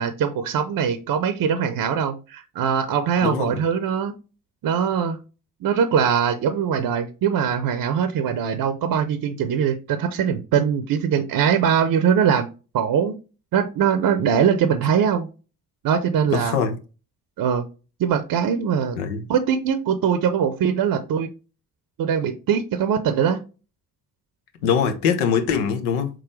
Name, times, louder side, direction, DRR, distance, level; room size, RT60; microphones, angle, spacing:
voice 1, 0.0-4.1 4.6-5.2 5.6-12.5 12.7-13.1 13.5-15.3 15.8-16.6 17.4-17.7 18.0-19.0 19.3-21.3 22.0-23.4, right 7 dB, 50° right, 0.7 m, -22 dB
voice 2, 3.2-3.6 16.3-16.8 18.9-19.3 24.6-26.1, left 7 dB, 80° left, 0.8 m, -22 dB
4.4 x 3.7 x 3.2 m
hypercardioid pair, 40°, 45 cm